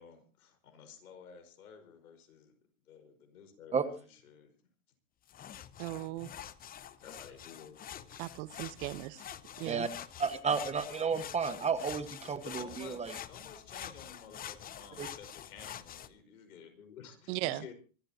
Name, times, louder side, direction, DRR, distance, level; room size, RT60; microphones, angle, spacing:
voice 1, 0.0-2.5 2.9-4.6 7.0-8.2 9.0-9.6 12.4-13.0 13.3-17.7, left 6 dB, 85° left, 7 dB, 5.2 m, -53 dB
sound 1, 5.3-16.1, left 10 dB, 20° left, 0.8 m, -47 dB
voice 2, 5.8-6.3 8.2-9.2 9.6-9.9 17.3-17.6, right 18 dB, 50° right, 15 dB, 1.2 m, -37 dB
voice 3, 10.2-13.1 15.0-15.1, right 5 dB, 15° right, 11 dB, 1.1 m, -32 dB
25.0 x 14.0 x 2.9 m, 0.37 s
hypercardioid pair, 125°, 43 cm